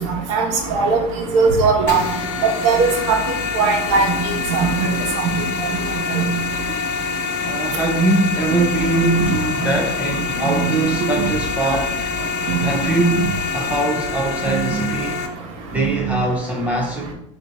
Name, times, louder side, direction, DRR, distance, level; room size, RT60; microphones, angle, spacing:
voice 1, 0.3-1.0 1.3-2.0 2.6-3.2 3.6-4.2 4.5-4.7 6.1-6.2, right 4 dB, 70° right, 1.1 m, -17 dB
sound 1, 1.9-15.3, left 6 dB, 70° left, 0.7 m, -26 dB
voice 2, 7.4-12.0 12.6-15.2 15.7-17.1, right 2 dB, 10° right, 0.4 m, -22 dB
sound 2, 8.5-9.6 10.5-11.6 12.5-13.6 14.5-15.0 15.8-16.3, right 7 dB, 55° right, 0.6 m, -26 dB
3.8 x 2.6 x 4.5 m
supercardioid pair, 130°, 16 cm